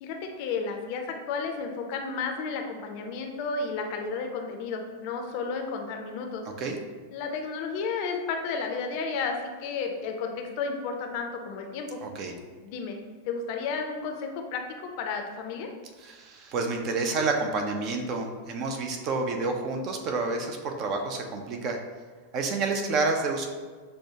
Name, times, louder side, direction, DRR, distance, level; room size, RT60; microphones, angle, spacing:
voice 1, 0.0-6.5 7.1-12.0 12.6-13.0 13.3-15.7, left 5 dB, 45° left, 4 dB, 0.5 m, -32 dB
voice 2, 12.0-12.3 16.0-21.8 22.3-23.5, right 3 dB, 35° right, 3 dB, 0.6 m, -29 dB
6.2 x 2.2 x 2.8 m, 1.4 s
figure-of-eight pair, 90°, 0 cm